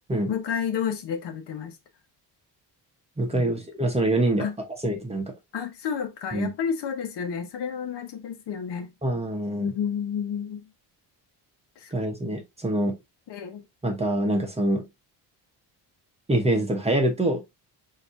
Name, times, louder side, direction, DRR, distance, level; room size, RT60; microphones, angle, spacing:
voice 1, 0.3-1.8 3.3-3.5 4.4-4.6 5.5-8.9 9.6-10.7 11.8-11.9 13.3-13.6, left 7 dB, 70° left, 1.1 m, -31 dB
voice 2, 3.2-4.5 4.8-5.3 6.3-6.5 9.0-9.7 11.9-13.0 13.8-14.8 16.3-17.4, right 1 dB, 15° right, 0.9 m, -25 dB
5.9 x 2.9 x 2.6 m
cardioid pair, 150°, 42 cm